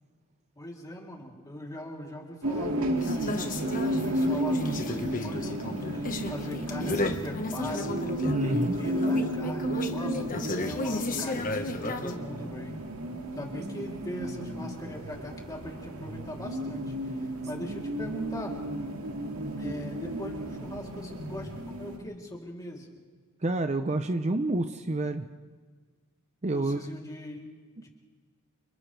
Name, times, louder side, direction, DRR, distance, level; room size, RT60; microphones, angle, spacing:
voice 1, 0.5-3.4 4.0-8.1 8.4-12.8 13.2-18.6 19.6-22.9 26.4-27.5 27.8-27.9, left 1 dB, 15° left, -2 dB, 3.4 m, -41 dB
sound 1, 2.4-22.0, right 1 dB, 70° right, 2.3 m, -33 dB
sound 2, 3.0-12.2, left 2 dB, 40° left, 1.5 m, -34 dB
voice 2, 8.3-8.7 23.4-25.2 26.4-26.8, right 2 dB, 30° right, 8 dB, 0.7 m, -28 dB
30.0 x 29.5 x 3.4 m, 1.5 s
head